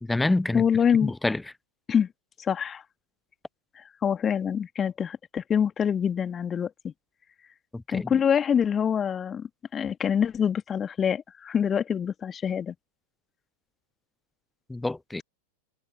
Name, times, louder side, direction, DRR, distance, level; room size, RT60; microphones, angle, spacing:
voice 1, 0.0-0.6 1.0-1.4 7.7-8.2 14.7-15.2, left 2 dB, 5° left, 0.6 m, -27 dB
voice 2, 0.5-1.1 1.9-2.1 2.4-2.8 3.7-6.9 7.9-12.8, left 8 dB, 20° left, 2.3 m, -25 dB
figure-of-eight pair, 90°, 0 cm